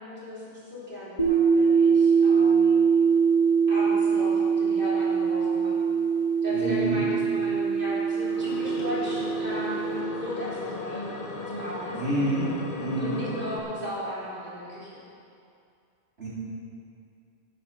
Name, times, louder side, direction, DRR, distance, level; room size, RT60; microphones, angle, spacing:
voice 1, 0.0-2.8 3.7-5.7 6.4-9.9 10.2-11.1 11.5-12.2 13.0-15.0, left 1 dB, 50° right, -8 dB, 3.8 m, -36 dB
sound 1, 1.2-10.0, right 6 dB, 30° left, 1.2 m, -23 dB
voice 2, 6.5-7.0 11.9-12.5 12.8-13.2 16.2-16.3, right 1 dB, 65° right, -8 dB, 3.6 m, -28 dB
sound 2, 8.2-13.6, left 3 dB, 50° left, 1.0 m, -36 dB
11.5 x 10.5 x 5.6 m, 2.4 s
omnidirectional pair, 1.1 m